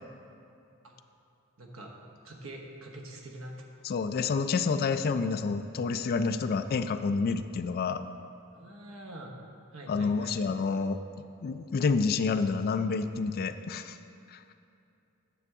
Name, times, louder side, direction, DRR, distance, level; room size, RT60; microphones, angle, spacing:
voice 1, 1.6-1.9 2.2-3.6 8.5-9.4 9.7-10.4, right 1 dB, 70° right, 1 dB, 1.0 m, -44 dB
voice 2, 3.8-8.0 9.9-11.0 11.4-14.0 14.3-14.4, left 4 dB, 45° left, 9 dB, 0.3 m, -28 dB
9.3 x 6.9 x 3.6 m, 2.6 s
head